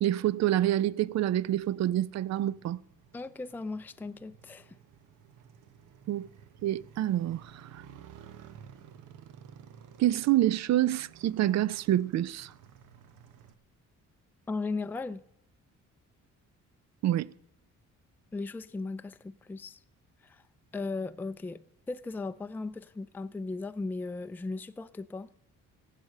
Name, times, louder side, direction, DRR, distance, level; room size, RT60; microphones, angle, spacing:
voice 1, 0.0-2.8 6.1-6.3 6.6-7.8 10.0-12.5 17.0-17.3, right 13 dB, 65° right, 0.5 m, -27 dB
Motorcycle, 1.0-13.5, right 8 dB, 85° right, 1.0 m, -54 dB
voice 2, 3.1-4.8 14.5-15.2 18.3-19.8 20.2-20.4 20.7-21.6 21.9-25.3, left 3 dB, 5° left, 0.4 m, -37 dB
15.5 x 8.3 x 6.5 m
cardioid pair, 90°, 30 cm